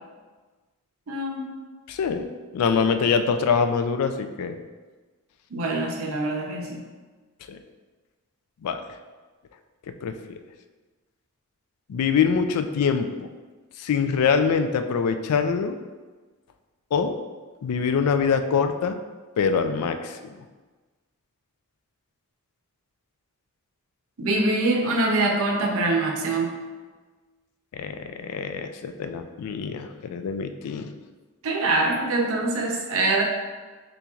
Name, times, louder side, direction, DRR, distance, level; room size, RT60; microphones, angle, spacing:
voice 1, 1.1-1.5 5.5-6.8 24.2-26.6 31.4-33.2, right 2 dB, 65° right, 1 dB, 0.6 m, -24 dB
voice 2, 1.9-2.3 2.5-4.6 7.5-7.6 8.6-8.8 10.0-10.4 11.9-13.3 13.8-15.8 16.9-17.2 17.6-19.0 19.4-20.2 27.7-30.9, left 6 dB, 85° left, 8 dB, 0.3 m, -24 dB
4.4 x 3.9 x 2.3 m, 1.3 s
head